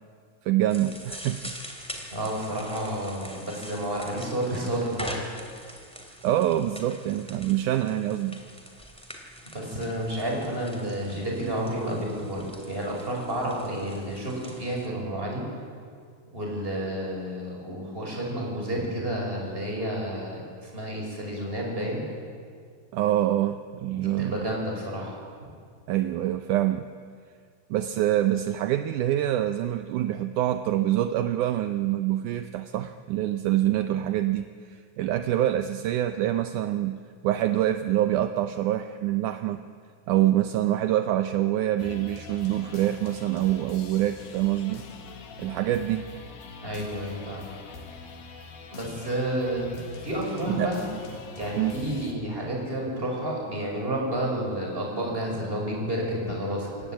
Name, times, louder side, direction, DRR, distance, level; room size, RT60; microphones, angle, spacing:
voice 1, 0.5-1.5 6.2-8.4 22.9-24.5 25.9-26.9 27.7-39.6 40.1-44.8 45.4-46.1 50.5-50.7 51.6-51.8, right 13 dB, 75° right, 9 dB, 1.9 m, -25 dB
sound 1, 0.7-14.9, equal, ahead, 2.1 m, -44 dB
voice 2, 2.1-5.1 9.5-15.4 16.3-22.0 23.9-25.2 46.6-47.4 48.7-49.7 50.0-50.9 51.4-56.7, right 1 dB, 15° right, -1 dB, 5.8 m, -30 dB
sound 2, 41.8-52.1, left 5 dB, 75° left, 3.7 m, -43 dB
28.0 x 16.5 x 8.8 m, 2.1 s
omnidirectional pair, 4.3 m